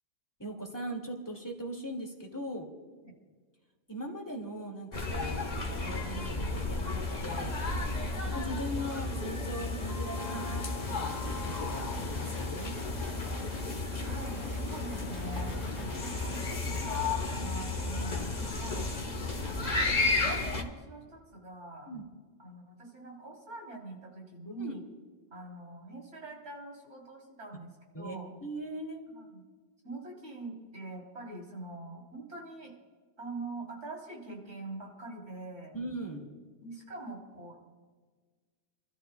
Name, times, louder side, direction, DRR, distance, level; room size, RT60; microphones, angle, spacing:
voice 1, 0.4-2.7 3.9-7.5 8.0-12.7 15.6-15.9 21.9-22.0 24.5-24.7 27.9-29.0 35.7-36.3, right 1 dB, 15° left, 1 dB, 2.1 m, -40 dB
sound 1, 4.9-20.6, left 3 dB, 35° left, 1.3 m, -33 dB
sound 2, 10.2-13.7 14.0-17.0, equal, 15° right, 3.0 m, -48 dB
voice 2, 14.0-15.6 15.9-18.9 19.4-21.9 22.4-24.8 25.3-28.3 29.2-29.4 29.8-32.7 33.2-35.7 36.6-37.6, right 2 dB, 70° right, -1 dB, 3.7 m, -44 dB
29.0 x 13.5 x 2.2 m, 1.5 s
omnidirectional pair, 1.3 m